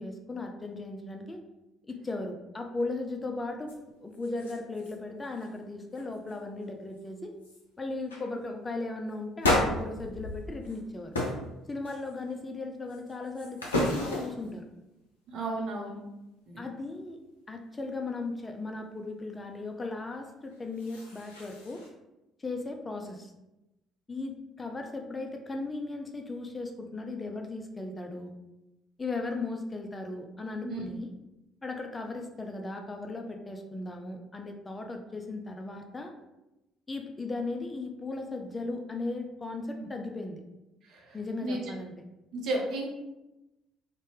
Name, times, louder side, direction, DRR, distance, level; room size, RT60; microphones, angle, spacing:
voice 1, 0.0-1.4 1.9-3.7 4.0-7.3 7.8-11.1 11.7-14.7 16.6-17.2 17.5-21.8 22.4-23.3 24.1-28.3 29.0-31.1 31.6-36.1 36.9-40.4 41.1-41.9, left 3 dB, 25° left, 4 dB, 0.4 m, -37 dB
sound 1, 3.7-3.8 4.1-4.9 5.2-5.6 5.9-6.4 7.0-7.1 7.4-7.6 8.1-8.3 9.4-10.8 11.1-11.4 11.8-12.3 12.9-14.5 20.5-21.9, left 1 dB, 80° left, 0.5 m, -32 dB
voice 2, 15.3-16.0 16.5-16.6 30.6-30.8 41.4-41.6 42.3-42.9, right 2 dB, 55° right, -1 dB, 0.7 m, -32 dB
2.6 x 2.1 x 3.1 m, 0.97 s
figure-of-eight pair, 50°, 0 cm